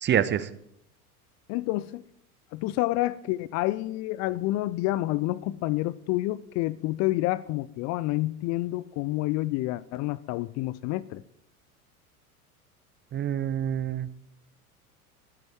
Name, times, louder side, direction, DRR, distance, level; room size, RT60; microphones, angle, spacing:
voice 1, 0.0-0.5 13.1-14.1, right 9 dB, 25° right, 0.9 m, -26 dB
voice 2, 1.5-2.0 2.5-11.2, left 18 dB, 40° left, 0.5 m, -28 dB
22.0 x 9.6 x 4.7 m
figure-of-eight pair, 80°, 45 cm